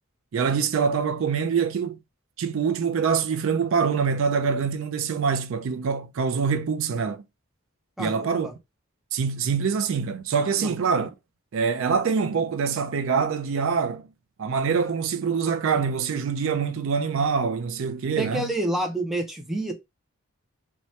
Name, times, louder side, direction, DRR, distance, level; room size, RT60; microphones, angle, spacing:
voice 1, 0.3-2.0 2.4-7.2 8.0-8.5 9.1-11.1 11.5-14.1 14.4-18.5, right 6 dB, 65° right, 0.4 m, -25 dB
voice 2, 8.0-8.5 10.6-10.7 18.2-19.7, right 1 dB, ahead, 0.5 m, -28 dB
2.7 x 2.2 x 3.1 m
head